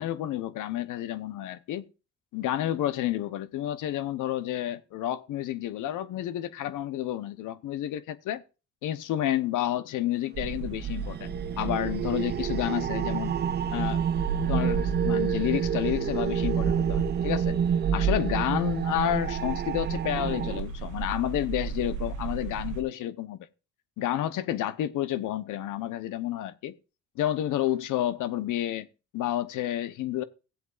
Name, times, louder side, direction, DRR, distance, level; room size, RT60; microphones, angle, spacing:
voice 1, 0.0-1.9 2.3-8.4 8.8-13.4 13.7-14.1 14.5-17.6 17.9-23.4 24.0-26.7 27.2-28.9 29.1-30.2, left 12 dB, 85° left, 0.9 m, -30 dB
sound 1, 10.3-22.8, right 5 dB, 80° right, 1.1 m, -33 dB
sound 2, 10.4-20.6, right 8 dB, 35° right, 0.4 m, -29 dB
16.5 x 8.0 x 2.5 m
cardioid pair, 90°, 30 cm